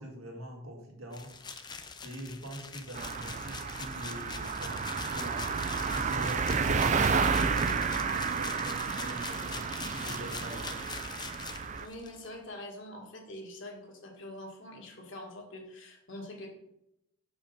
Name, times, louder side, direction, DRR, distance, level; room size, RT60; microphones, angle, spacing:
voice 1, 0.0-1.3 2.0-10.9, equal, 80° right, 0 dB, 1.9 m, -44 dB
sound 1, 1.1-12.3, left 5 dB, 20° left, 0.5 m, -43 dB
sound 2, 2.9-11.9, right 5 dB, 35° right, 0.4 m, -31 dB
voice 2, 11.8-16.5, left 1 dB, 60° left, 1 dB, 1.8 m, -44 dB
6.4 x 5.1 x 5.2 m, 0.82 s
head